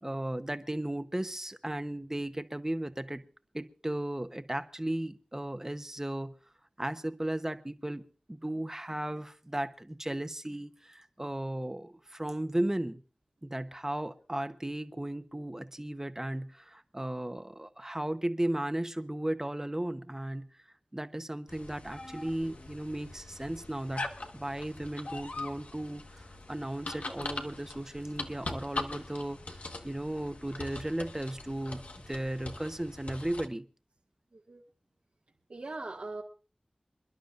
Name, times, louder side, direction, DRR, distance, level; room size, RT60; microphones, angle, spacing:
voice 1, 0.0-3.2 3.5-6.3 6.8-8.0 8.3-13.0 13.4-20.5 20.9-24.1 24.3-26.0 26.5-29.4 29.8-33.6, right 1 dB, 20° right, 10 dB, 1.0 m, -35 dB
sound 1, 21.5-33.5, left 2 dB, 75° left, 1.4 m, -42 dB
sound 2, 21.9-23.7 24.5-24.7 26.0-26.1, left 1 dB, 30° left, 1.5 m, -52 dB
voice 2, 34.3-34.6 35.5-36.2, right 2 dB, 75° right, -3 dB, 1.8 m, -40 dB
28.0 x 11.5 x 2.5 m, 0.35 s
wide cardioid pair, 55°, 2 cm